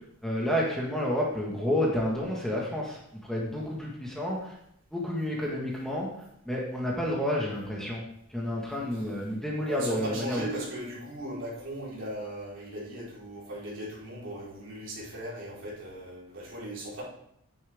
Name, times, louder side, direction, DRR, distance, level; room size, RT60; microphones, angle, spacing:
voice 1, 0.2-4.5 4.9-6.1 6.4-8.0 8.3-10.5, left 1 dB, ahead, -4 dB, 1.6 m, -30 dB
voice 2, 9.6-17.0, right 1 dB, 60° right, -6 dB, 4.2 m, -38 dB
10.5 x 10.0 x 3.6 m, 0.74 s
head